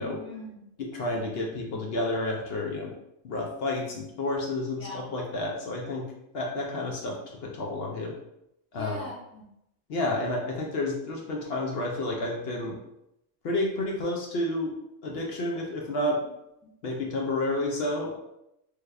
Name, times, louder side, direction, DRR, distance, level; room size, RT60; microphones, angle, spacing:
voice 1, 0.0-0.6 4.8-5.1 8.7-9.5 16.6-16.7, left 1 dB, 15° left, -9 dB, 0.6 m, -41 dB
voice 2, 0.8-2.9 3.2-6.0 6.3-8.1 8.7-9.0 9.9-12.8 13.4-14.7 15.0-16.2 16.8-18.2, left 2 dB, 60° left, -1 dB, 0.7 m, -30 dB
3.3 x 2.3 x 3.3 m, 0.84 s
omnidirectional pair, 1.4 m